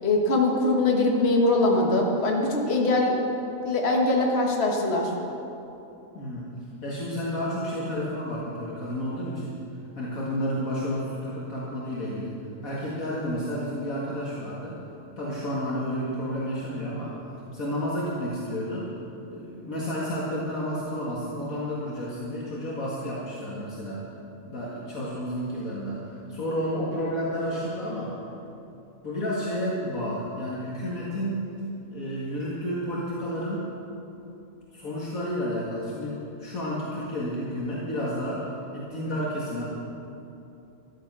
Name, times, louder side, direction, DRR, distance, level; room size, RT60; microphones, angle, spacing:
voice 1, 0.0-3.2 3.6-5.1, left 2 dB, 45° left, -1 dB, 1.8 m, -22 dB
voice 2, 6.1-6.5 6.8-9.5 10.0-12.3 12.6-14.8 15.2-17.2 17.5-18.9 19.3-24.0 24.4-28.1 29.0-31.5 31.9-33.7 34.7-39.6, equal, 70° left, -6 dB, 2.4 m, -31 dB
14.0 x 12.0 x 6.1 m, 2.9 s
omnidirectional pair, 1.5 m